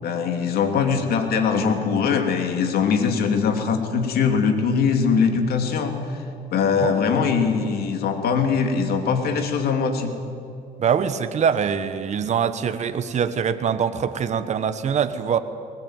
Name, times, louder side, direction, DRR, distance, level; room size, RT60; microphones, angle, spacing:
voice 1, 0.0-6.2 6.5-10.1, left 6 dB, 65° left, 5 dB, 3.0 m, -22 dB
voice 2, 10.8-15.4, right 7 dB, 45° right, 10 dB, 1.3 m, -23 dB
20.5 x 20.0 x 9.2 m, 2.6 s
cardioid pair, 110°, 17 cm